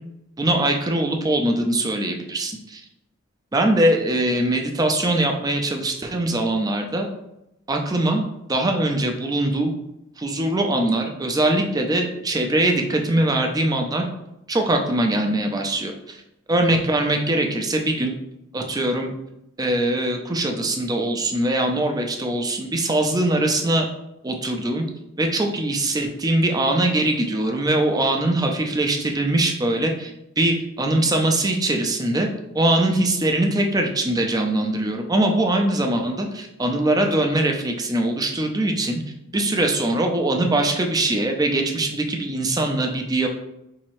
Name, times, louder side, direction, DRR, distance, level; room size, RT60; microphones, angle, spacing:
voice 1, 0.4-2.8 3.5-7.1 7.7-9.7 10.2-14.1 14.5-16.2 16.5-18.1 18.5-19.1 19.6-23.9 24.2-24.9 25.2-32.3 32.5-39.0 39.3-43.3, right 1 dB, 20° right, 3 dB, 0.4 m, -22 dB
4.1 x 2.7 x 3.0 m, 0.87 s
head